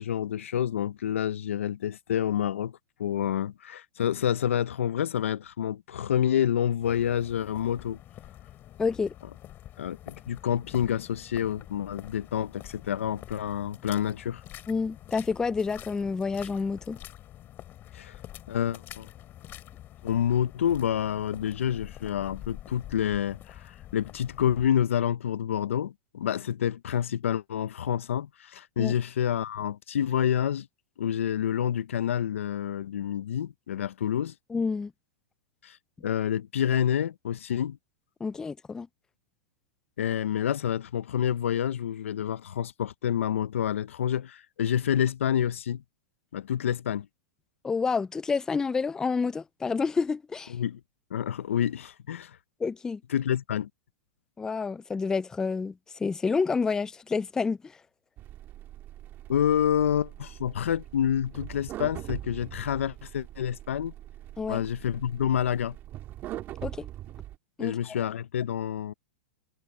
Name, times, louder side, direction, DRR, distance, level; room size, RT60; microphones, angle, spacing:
voice 1, 0.0-8.0 9.8-14.4 17.9-18.2 18.5-19.1 20.0-30.7 31.0-34.3 35.6-35.8 36.0-37.8 40.0-45.8 46.3-47.1 50.5-50.8 51.1-52.4 53.1-53.7 59.3-63.9 64.5-65.8 67.6-68.9, left 9 dB, 90° left, 0.7 m, -28 dB
sound 1, 6.8-24.7, left 13 dB, 30° left, 3.4 m, -47 dB
voice 2, 8.8-9.1 14.7-17.0 28.8-28.9 34.5-34.9 38.2-38.9 47.6-50.5 52.6-53.0 54.4-55.7 56.0-57.6 64.4-64.6 66.6-66.9 67.6-67.7, left 5 dB, 10° left, 0.3 m, -28 dB
sound 2, 58.2-67.4, right 13 dB, 30° right, 1.6 m, -42 dB
hypercardioid pair, 135°, 7 cm